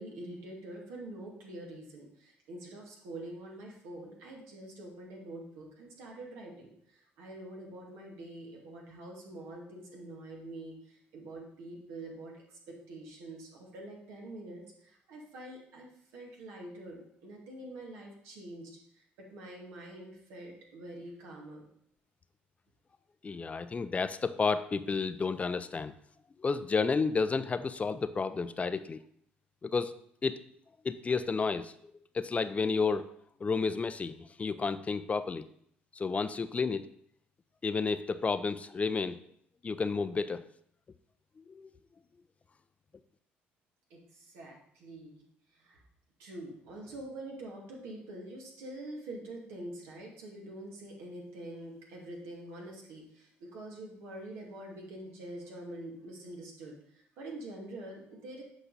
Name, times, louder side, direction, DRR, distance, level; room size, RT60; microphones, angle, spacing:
voice 1, 0.0-21.7 43.9-45.2 45.5-45.8 46.2-58.4, right 1 dB, 80° right, -2 dB, 2.1 m, -45 dB
voice 2, 23.2-25.9 26.4-29.0 29.6-29.9 30.2-30.4 30.8-31.7 32.1-33.1 33.4-35.4 35.9-36.9 37.6-39.2 39.6-40.4 41.5-41.7, left 4 dB, 30° left, 12 dB, 0.5 m, -31 dB
8.0 x 4.9 x 4.0 m, 0.68 s
supercardioid pair, 75°, 5 cm